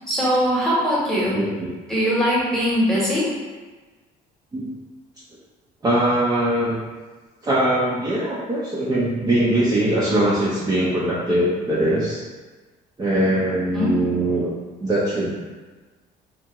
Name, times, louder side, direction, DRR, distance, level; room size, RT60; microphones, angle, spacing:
voice 1, 0.1-1.4 1.9-3.2 13.7-13.9, equal, 5° left, -7 dB, 1.0 m, -21 dB
voice 2, 1.3-1.7 4.5-4.7 5.8-6.8 7.4-12.2 13.0-14.5 14.8-15.4, right 1 dB, 20° right, -8 dB, 0.5 m, -21 dB
2.5 x 2.3 x 2.9 m, 1.3 s
cardioid pair, 110°, 17 cm